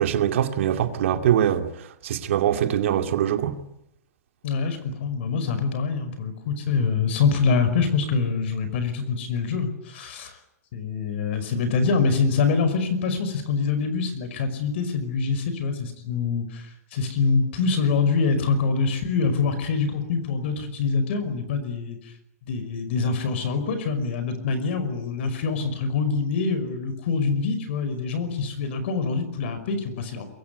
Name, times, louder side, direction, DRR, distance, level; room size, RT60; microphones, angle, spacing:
voice 1, 0.0-3.6, right 10 dB, 55° right, 2.4 m, -23 dB
voice 2, 4.4-10.4 10.7-16.7 16.9-22.0 22.5-30.3, left 5 dB, 45° left, 5.5 m, -25 dB
24.0 x 22.5 x 9.5 m
hypercardioid pair, 175°, 8 cm